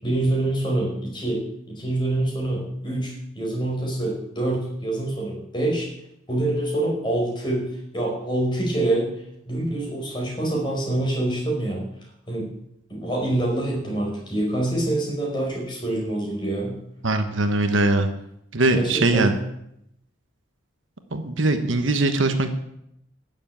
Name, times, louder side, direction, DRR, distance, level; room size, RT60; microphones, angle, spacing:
voice 1, 0.0-1.4 1.7-5.9 6.3-9.1 9.5-11.8 12.3-12.5 12.9-16.8 18.7-19.3, right 1 dB, 20° left, -2 dB, 5.0 m, -25 dB
voice 2, 17.0-18.1 18.5-19.3 21.1-22.5, right 2 dB, 60° right, 8 dB, 1.2 m, -21 dB
12.5 x 7.3 x 9.0 m, 0.78 s
head